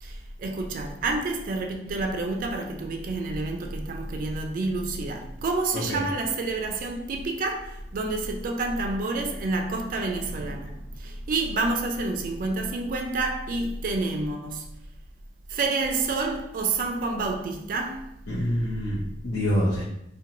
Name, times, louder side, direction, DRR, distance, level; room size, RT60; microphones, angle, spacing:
voice 1, 0.0-14.7 15.5-18.1, right 3 dB, 50° right, 0.3 m, -29 dB
voice 2, 18.3-19.8, equal, 85° left, 0.6 m, -26 dB
2.5 x 2.2 x 2.9 m
head